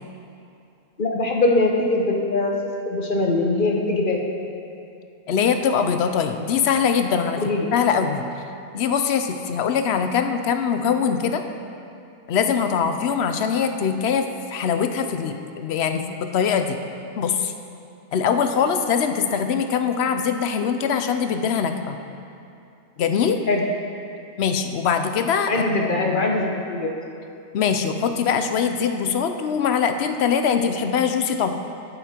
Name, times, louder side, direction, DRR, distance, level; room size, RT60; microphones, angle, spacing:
voice 1, 1.0-2.5 2.8-4.3 7.4-7.7 23.5-23.6 25.5-26.9, left 2 dB, 55° left, 0 dB, 1.1 m, -22 dB
voice 2, 5.3-7.4 7.7-8.3 8.7-11.4 12.3-16.8 17.2-17.5 18.1-22.0 23.0-23.4 24.4-26.2 27.5-31.5, left 7 dB, 85° left, 7 dB, 0.9 m, -22 dB
16.5 x 5.6 x 4.4 m, 2.6 s
omnidirectional pair, 1.1 m